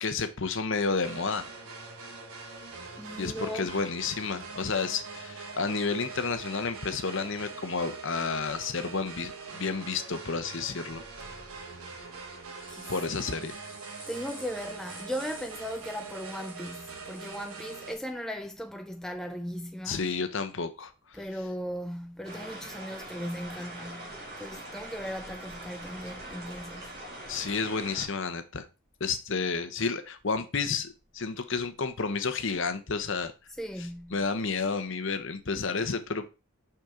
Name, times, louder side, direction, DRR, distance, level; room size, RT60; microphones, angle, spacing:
voice 1, 0.0-1.5 3.2-11.0 12.9-13.6 19.9-20.9 27.3-28.6 29.0-33.3 34.1-36.3, left 4 dB, 55° left, 0.9 m, -31 dB
sound 1, 1.0-17.9, right 4 dB, 75° right, 1.2 m, -43 dB
voice 2, 3.0-3.7 12.7-12.9 14.1-20.0 21.1-27.0 33.6-34.2, equal, ahead, 0.4 m, -37 dB
sound 2, 12.5-18.0, right 2 dB, 25° right, 1.7 m, -50 dB
sound 3, 22.2-28.1, right 1 dB, 45° right, 2.8 m, -43 dB
5.9 x 5.8 x 3.7 m
head